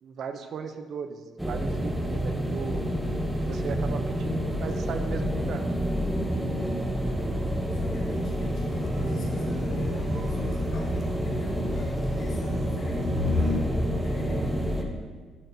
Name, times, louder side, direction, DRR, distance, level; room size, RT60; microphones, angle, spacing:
voice 1, 0.0-2.9 3.5-5.6 15.0-15.1, right 6 dB, 50° right, 8 dB, 0.5 m, -37 dB
sound 1, 1.4-14.8, equal, 5° right, 0.6 m, -28 dB
voice 2, 7.0-15.0, left 1 dB, 60° left, -3 dB, 1.9 m, -42 dB
sound 2, 8.8-13.6, left 3 dB, 30° right, 1.5 m, -34 dB
12.0 x 5.9 x 2.7 m, 1.5 s
cardioid pair, 140°, 0 cm